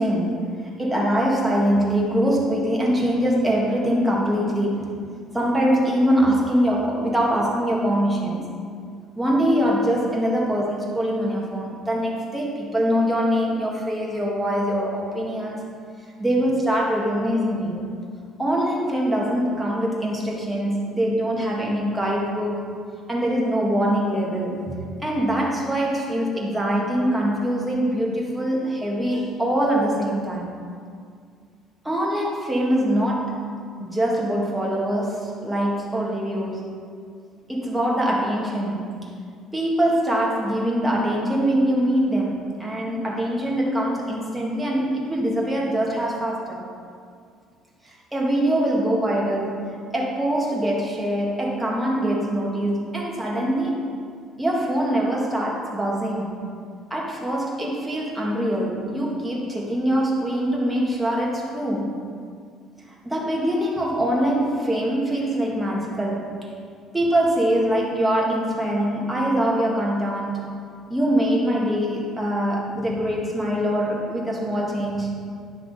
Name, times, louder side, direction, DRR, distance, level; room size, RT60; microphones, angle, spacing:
voice 1, 0.0-4.9 5.3-8.5 9.2-15.7 16.2-17.8 18.4-22.7 23.1-24.8 25.0-30.5 31.8-33.4 33.8-36.7 37.5-39.1 39.5-46.7 47.8-53.8 54.4-56.4 56.9-61.9 62.9-66.3 66.9-70.4 70.9-75.1, equal, 5° right, -3 dB, 1.8 m, -23 dB
10.0 x 5.9 x 4.2 m, 2.2 s
cardioid pair, 110°, 0 cm